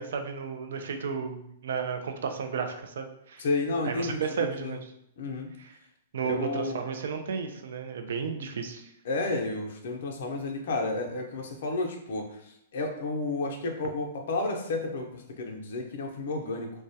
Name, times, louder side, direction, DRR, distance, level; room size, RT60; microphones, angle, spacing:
voice 1, 0.0-3.5 3.9-4.9 5.6-5.7 6.1-8.9, right 6 dB, 70° right, 6 dB, 0.3 m, -33 dB
voice 2, 3.4-4.8 5.2-5.5 6.4-6.8 9.0-16.7, left 2 dB, 65° left, 2 dB, 0.5 m, -31 dB
2.2 x 2.0 x 2.6 m, 0.77 s
hypercardioid pair, 160°, 0 cm